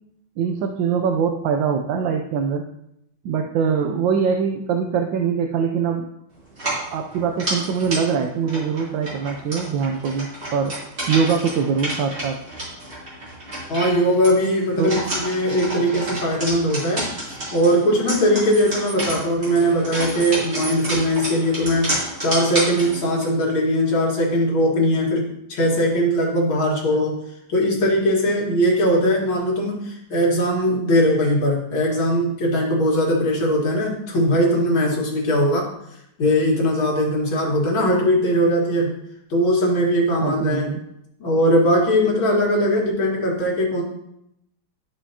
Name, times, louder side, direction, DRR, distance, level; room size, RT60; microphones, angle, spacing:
voice 1, 0.4-2.6 3.2-6.1 6.9-10.8 11.1-12.4 14.8-14.9 40.2-40.8, right 6 dB, 75° right, 4 dB, 1.3 m, -23 dB
sound 1, 6.5-23.3, right 1 dB, 35° right, 3.2 m, -30 dB
voice 2, 13.7-17.1 17.5-21.9 22.2-27.2 27.5-35.7 36.2-38.9 39.3-40.7 41.2-43.8, equal, 85° left, -2 dB, 2.5 m, -20 dB
12.0 x 5.0 x 2.8 m, 0.78 s
omnidirectional pair, 2.1 m